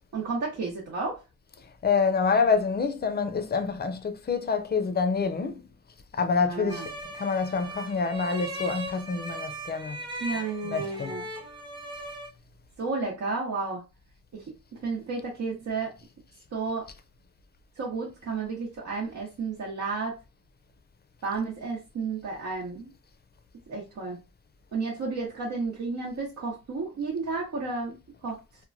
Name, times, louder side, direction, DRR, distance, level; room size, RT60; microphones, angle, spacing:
voice 1, 0.1-1.2 6.4-6.9 10.2-11.3 12.8-13.8 14.3-14.5 14.8-15.9 16.5-16.9 17.8-20.2 21.2-22.9 23.7-24.2 24.7-28.0 28.2-28.4, right 4 dB, 75° right, 0.8 m, -32 dB
voice 2, 1.8-5.7 6.1-10.0 10.6-11.2, left 5 dB, 35° left, 0.4 m, -27 dB
sound 1, 6.7-12.3, right 1 dB, 15° right, 0.8 m, -38 dB
2.9 x 2.2 x 2.5 m
wide cardioid pair, 115°, 29 cm